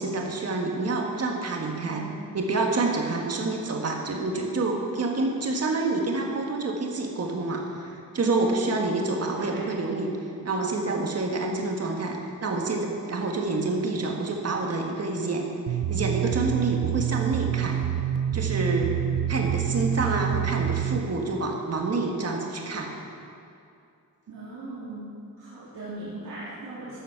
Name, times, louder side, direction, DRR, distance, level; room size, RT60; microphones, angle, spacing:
voice 1, 0.0-2.0 2.3-10.1 10.4-17.8 18.3-18.9 19.3-22.9, right 3 dB, 45° right, 1 dB, 1.5 m, -28 dB
voice 2, 1.8-2.1 9.5-9.7 24.3-25.1 25.4-27.0, right 2 dB, 65° right, -9 dB, 2.3 m, -39 dB
sound 1, 15.7-21.0, right 10 dB, 80° right, 0.7 m, -27 dB
12.5 x 7.3 x 5.8 m, 2.5 s
wide cardioid pair, 145°, 35 cm